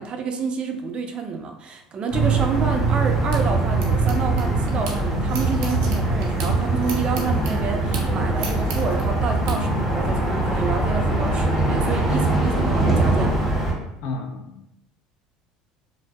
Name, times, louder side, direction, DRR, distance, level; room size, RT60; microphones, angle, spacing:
voice 1, 0.0-13.4, right 5 dB, 40° right, 4 dB, 0.4 m, -28 dB
sound 1, 2.1-13.7, right 2 dB, 5° left, 0.8 m, -22 dB
sound 2, 2.8-5.0 5.3-9.6, right 4 dB, 85° right, 0.6 m, -36 dB
voice 2, 14.0-14.7, left 3 dB, 65° left, 4 dB, 0.4 m, -32 dB
2.6 x 2.2 x 2.3 m, 0.82 s
supercardioid pair, 100°, 3 cm